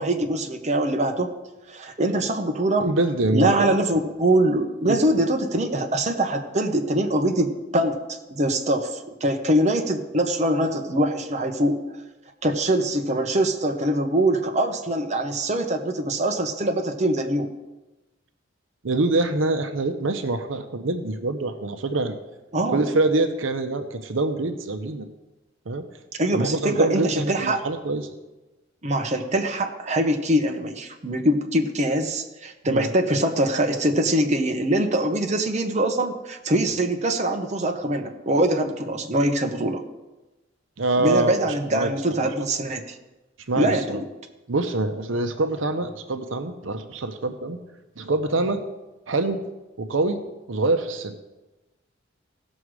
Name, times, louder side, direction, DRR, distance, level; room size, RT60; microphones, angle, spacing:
voice 1, 0.0-1.3 1.7-2.9 3.3-11.8 12.4-17.5 22.5-22.8 26.2-27.6 28.8-39.8 41.0-43.0 43.5-44.0, right 1 dB, 35° right, 4 dB, 1.0 m, -23 dB
voice 2, 2.8-3.7 4.9-5.0 18.8-22.2 22.7-25.0 25.7-25.8 26.3-28.1 32.6-32.9 40.8-41.3 41.7-41.9 42.2-42.3 43.5-44.0 44.5-47.6 48.0-48.6 49.1-49.4 49.8-50.2 50.5-51.1, right 2 dB, 85° right, 8 dB, 0.8 m, -25 dB
16.5 x 6.2 x 4.8 m, 1.1 s
head